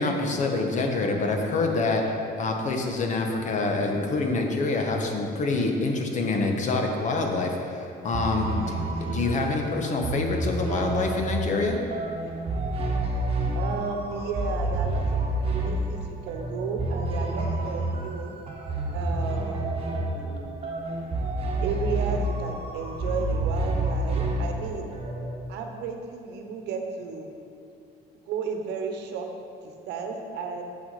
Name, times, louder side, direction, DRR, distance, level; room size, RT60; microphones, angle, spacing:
voice 1, 0.0-2.0 2.4-8.5 9.1-11.8, left 3 dB, 45° left, 2 dB, 1.2 m, -26 dB
sound 1, 8.1-25.4, right 2 dB, 35° right, 1.4 m, -29 dB
voice 2, 13.5-15.0 15.4-18.3 18.9-20.8 21.6-24.9 25.5-27.3 28.3-29.3 29.6-30.6, right 5 dB, 85° right, 4 dB, 0.9 m, -33 dB
7.2 x 6.0 x 5.7 m, 2.6 s
cardioid pair, 110°, 17 cm